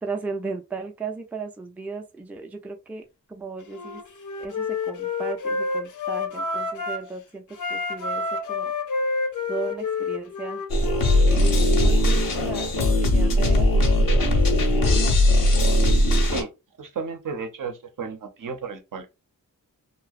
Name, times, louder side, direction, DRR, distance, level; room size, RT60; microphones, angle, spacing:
voice 1, 0.0-3.0 3.3-4.0 4.4-8.7 9.5-10.6 11.0-15.2, right 4 dB, 5° right, 0.3 m, -36 dB
Wind instrument woodwind instrument, 3.7-7.1 7.5-11.2, left 3 dB, 60° left, 0.5 m, -29 dB
sound 1, 10.7-16.4, left 1 dB, 90° left, 0.8 m, -19 dB
voice 2, 16.2-16.5 16.8-19.1, right 5 dB, 70° right, 0.6 m, -33 dB
2.6 x 2.0 x 2.4 m
wide cardioid pair, 90°, 34 cm